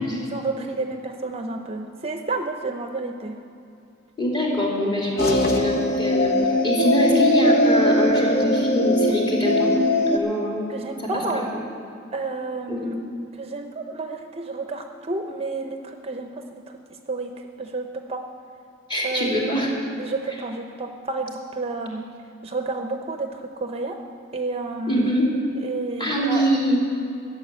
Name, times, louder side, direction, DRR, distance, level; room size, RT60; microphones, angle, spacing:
voice 1, 0.0-3.4 5.1-5.7 6.5-6.7 10.7-11.5 12.1-13.0 13.3-16.8 17.1-17.3 17.6-18.2 19.0-19.6 20.0-22.0 22.4-24.0 24.3-25.1 25.6-26.5, right 3 dB, 30° right, 5 dB, 0.6 m, -30 dB
voice 2, 4.2-6.3 6.6-9.7 10.1-10.7 11.3-11.6 12.7-12.9 18.9-19.7 24.9-25.3 26.0-26.8, equal, 25° left, -3 dB, 2.8 m, -23 dB
sound 1, 5.2-10.2, left 1 dB, 50° left, 1.2 m, -20 dB
13.0 x 7.2 x 9.9 m, 2.7 s
head